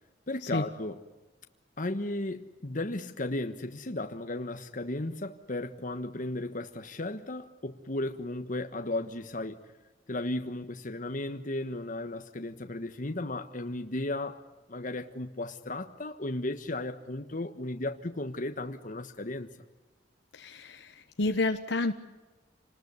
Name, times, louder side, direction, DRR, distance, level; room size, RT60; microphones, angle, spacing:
voice 1, 0.3-1.0 1.8-9.6 10.1-14.4 14.7-19.5, left 2 dB, 45° left, 7 dB, 1.3 m, -35 dB
voice 2, 20.3-21.9, left 2 dB, 70° left, 6 dB, 1.2 m, -30 dB
27.5 x 20.0 x 9.6 m, 1.2 s
head